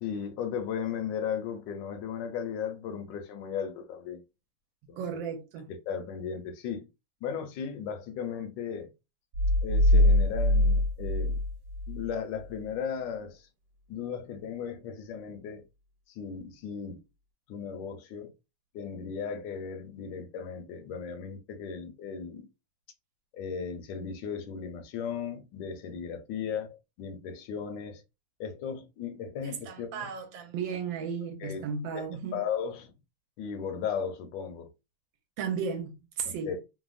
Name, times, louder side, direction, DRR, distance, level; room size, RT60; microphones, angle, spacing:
voice 1, 0.0-4.2 4.9-5.0 5.7-6.9 7.2-8.9 9.6-11.4 11.9-13.5 13.9-15.6 16.2-17.0 17.5-18.3 18.7-22.5 23.3-28.0 28.4-30.1 31.4-31.6 31.9-32.0 32.3-32.9 33.4-34.7 36.3-36.6, left 7 dB, 75° left, 1.2 m, -36 dB
voice 2, 5.0-5.7 29.4-32.4 35.4-36.5, right 6 dB, 80° right, 1.3 m, -35 dB
sound 1, 9.3-12.1, left 1 dB, 55° right, 1.3 m, -23 dB
3.3 x 2.0 x 2.4 m
omnidirectional pair, 2.2 m